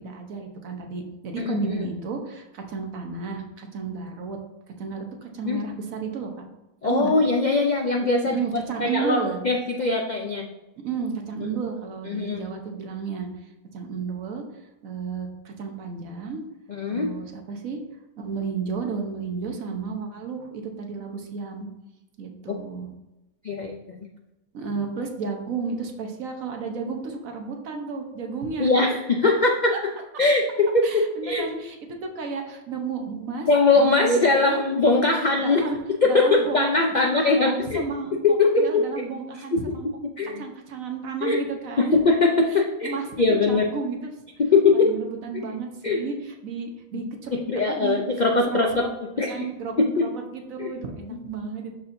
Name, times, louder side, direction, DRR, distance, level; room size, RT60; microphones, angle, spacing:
voice 1, 0.0-4.4 4.8-6.3 6.8-7.1 8.2-9.4 10.8-13.3 13.7-14.4 14.8-16.4 16.9-17.8 18.2-21.7 22.2-22.9 24.5-28.7 30.8-33.5 33.7-34.6 35.4-39.9 40.4-42.0 42.5-44.1 44.7-47.4 47.7-48.0 48.5-48.9 49.3-51.7, right 4 dB, 65° right, 3 dB, 1.3 m, -32 dB
voice 2, 1.4-1.8 5.5-5.6 6.8-8.3 8.8-10.5 11.4-11.5 12.1-12.4 16.7-17.1 23.4-23.8 28.6-29.7 30.2-30.9 31.2-31.4 33.5-35.6 36.1-37.8 38.4-38.6 39.5-39.6 40.2-40.4 41.2-41.4 42.0-43.7 44.4-44.9 45.8-46.0 47.3-48.9 49.2-49.4 50.0-50.1 50.6-50.7, left 3 dB, 70° left, 2 dB, 0.4 m, -21 dB
11.5 x 4.3 x 2.6 m, 0.97 s
omnidirectional pair, 1.6 m